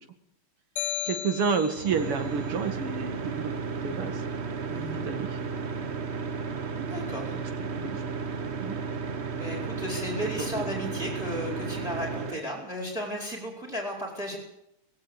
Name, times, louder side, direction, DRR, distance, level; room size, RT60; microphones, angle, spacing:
sound 1, 0.8-2.1, left 10 dB, 80° left, 1.8 m, -34 dB
voice 1, 1.0-3.5 3.8-4.2 4.7-5.4 7.8-8.0 8.6-8.8 10.2-10.9, right 5 dB, 85° right, 8 dB, 3.0 m, -30 dB
sound 2, 1.8-12.4, right 5 dB, 45° right, 1.0 m, -33 dB
voice 2, 4.7-5.0 6.8-7.4 9.4-14.4, equal, ahead, 1 dB, 4.6 m, -34 dB
19.0 x 18.0 x 8.1 m, 0.79 s
omnidirectional pair, 2.4 m